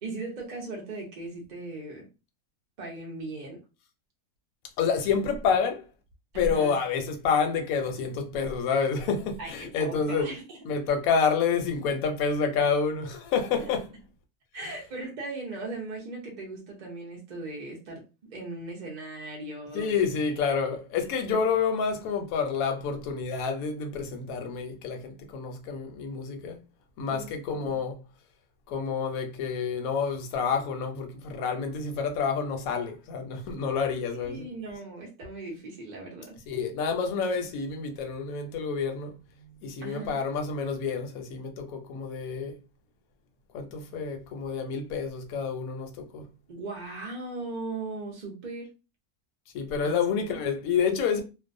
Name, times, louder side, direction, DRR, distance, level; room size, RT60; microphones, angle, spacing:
voice 1, 0.0-2.1 2.8-3.6 6.3-6.7 9.4-9.5 9.8-10.6 13.6-13.7 14.5-18.0 18.3-20.0 27.1-27.3 34.2-36.4 39.8-40.2 46.5-48.7 49.8-49.9 50.3-50.4, right 2 dB, 55° right, 0.5 m, -38 dB
voice 2, 4.8-5.9 6.3-10.3 10.6-13.9 14.6-14.7 19.7-26.6 27.0-28.0 28.7-34.5 36.5-39.2 39.6-42.5 43.5-46.3 49.5-51.2, left 6 dB, 70° left, 1.0 m, -28 dB
2.6 x 2.1 x 2.5 m
omnidirectional pair, 1.6 m